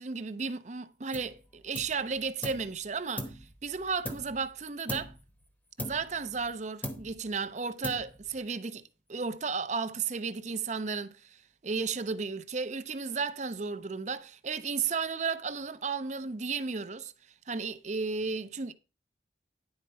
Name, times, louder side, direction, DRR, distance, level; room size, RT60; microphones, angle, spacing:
voice 1, 0.0-5.1 5.8-8.8 9.1-17.1 17.5-18.7, right 5 dB, 40° right, 0.6 m, -34 dB
sound 1, 1.1-1.4 1.7-2.7 3.2-4.5 4.9-5.3 5.8-6.5 6.8-7.3 7.8-8.4, left 1 dB, 10° left, 0.9 m, -40 dB
10.5 x 4.3 x 5.5 m
head